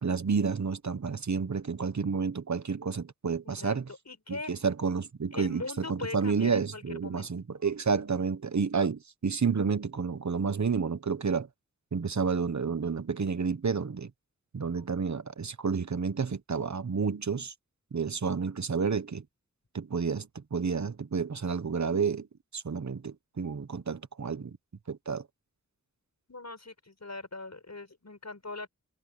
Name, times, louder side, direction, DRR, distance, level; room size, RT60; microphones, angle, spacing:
voice 1, 0.0-3.8 4.3-11.5 11.9-14.1 14.5-17.5 17.9-19.2 19.7-22.3 22.5-24.6 24.9-25.3, right 5 dB, 70° right, 1.1 m, -30 dB
voice 2, 3.4-4.6 5.3-7.3 26.3-28.7, left 3 dB, 60° left, 7.2 m, -41 dB
wide cardioid pair, 55°, 30 cm